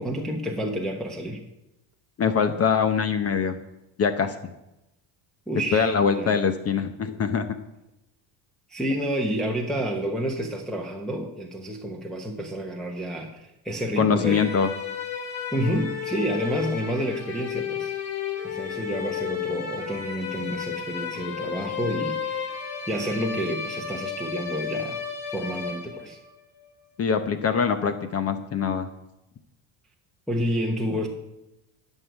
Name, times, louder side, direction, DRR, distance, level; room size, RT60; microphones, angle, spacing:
voice 1, 0.0-1.4 5.5-5.9 6.2-6.4 8.7-14.5 15.5-17.9 18.4-22.5 22.9-25.0 25.3-26.2 30.3-31.1, equal, ahead, -2 dB, 1.1 m, -29 dB
voice 2, 2.2-3.5 4.0-4.3 5.7-7.5 14.0-14.7 27.0-28.9, left 6 dB, 30° left, 9 dB, 0.8 m, -23 dB
sound 1, 14.2-26.3, left 7 dB, 90° left, 4.7 m, -33 dB
13.0 x 6.5 x 8.2 m, 0.90 s
cardioid pair, 155°, 46 cm